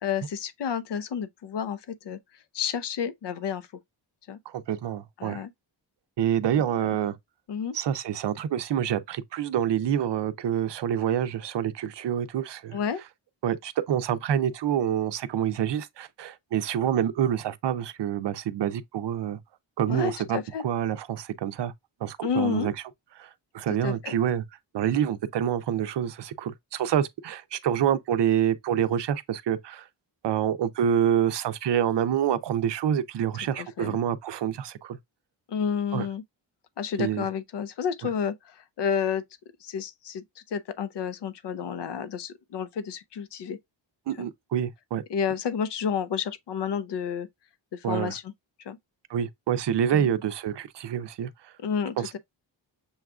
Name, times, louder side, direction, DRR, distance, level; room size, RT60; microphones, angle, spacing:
voice 1, 0.0-2.2 2.5-3.7 4.3-4.4 5.2-5.5 6.9-7.0 7.5-7.7 12.7-13.0 19.9-20.6 22.2-22.7 23.8-24.1 33.6-34.0 35.5-36.2 36.8-39.2 39.6-40.2 40.5-43.6 44.2-44.3 45.1-47.3 47.7-48.3 48.7-48.8 49.9-50.1 51.6-52.2, left 7 dB, 60° left, 0.6 m, -30 dB
voice 2, 4.5-5.4 6.2-7.2 7.7-12.8 13.4-19.4 19.8-20.4 20.6-21.7 22.0-22.7 23.2-23.3 23.5-24.4 24.7-29.9 30.2-35.0 35.9-36.1 37.0-37.3 44.1-45.0 47.8-48.1 49.1-51.3 52.0-52.2, right 9 dB, 65° right, 0.6 m, -27 dB
7.0 x 2.4 x 2.3 m
wide cardioid pair, 125°, 46 cm